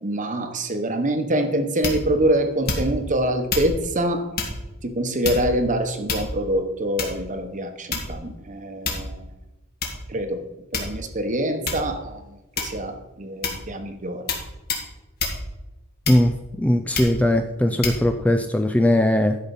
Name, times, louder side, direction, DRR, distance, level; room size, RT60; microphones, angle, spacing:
voice 1, 0.0-4.3 4.8-9.2 10.1-10.4 10.7-14.2, right 1 dB, 35° right, 7 dB, 1.0 m, -25 dB
sound 1, 1.8-2.2 2.6-3.1 3.5-3.7 4.3-4.6 5.2-5.6 6.1-6.5 7.0-7.3 7.9-8.3 8.8-9.2 9.8-10.0 10.7-11.2 11.6-11.9 12.5-12.9 13.4-13.7 14.3-14.4 14.7-14.9 15.2-15.4 16.0-16.4 16.9-17.2 17.8-18.0, left 3 dB, 45° left, 1.9 m, -27 dB
voice 2, 16.1-19.4, left 1 dB, 5° left, 7 dB, 0.4 m, -20 dB
12.0 x 5.7 x 5.4 m, 1.1 s
head